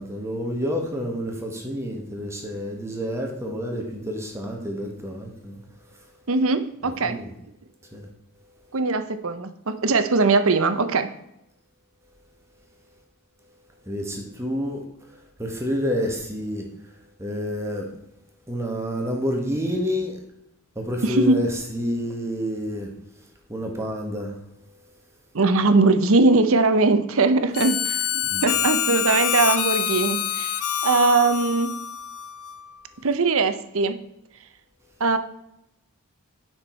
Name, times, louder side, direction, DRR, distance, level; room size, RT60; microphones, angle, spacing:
voice 1, 0.0-5.6 7.0-7.3 7.9-8.1 13.9-16.9 17.2-17.9 18.5-20.2 20.7-22.9 23.5-24.4 28.2-28.5, equal, 10° right, 1 dB, 1.2 m, -29 dB
voice 2, 6.3-7.2 8.7-11.1 21.0-21.4 25.3-30.6 30.8-31.7 33.0-34.0 35.0-35.2, right 3 dB, 70° right, 10 dB, 0.7 m, -20 dB
Harmonica, 27.5-32.7, left 10 dB, 80° left, 0.7 m, -26 dB
9.8 x 6.0 x 4.4 m, 0.82 s
head